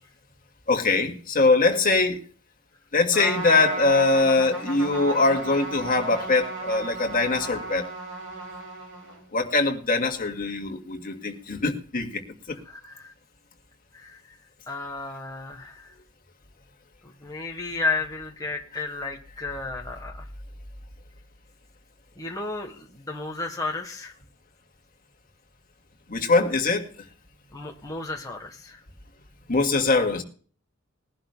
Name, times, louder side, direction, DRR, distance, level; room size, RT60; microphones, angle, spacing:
voice 1, 0.7-2.2 2.9-7.9 9.3-12.2 12.5-12.6 26.1-26.9 29.5-30.2, left 3 dB, 45° left, 3 dB, 2.0 m, -22 dB
Trumpet, 3.1-9.3, right 2 dB, 90° right, 5.8 m, -34 dB
voice 2, 12.7-13.1 13.9-14.2 14.7-15.9 17.2-20.3 22.2-24.1 27.5-28.8, left 3 dB, 15° left, 0 dB, 1.3 m, -33 dB
21.0 x 11.5 x 2.2 m, 0.43 s
head